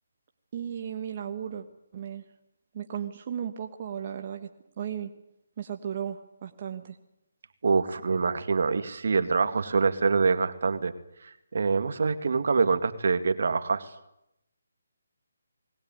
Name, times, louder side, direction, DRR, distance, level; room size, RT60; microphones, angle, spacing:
voice 1, 0.5-1.7 1.9-2.2 2.7-4.5 4.8-5.1 5.6-7.0, right 8 dB, 35° right, 5 dB, 1.3 m, -35 dB
voice 2, 7.6-10.9 11.2-13.9, right 4 dB, 60° right, 10 dB, 2.1 m, -25 dB
21.0 x 18.5 x 9.3 m, 0.82 s
hypercardioid pair, 165°, 0 cm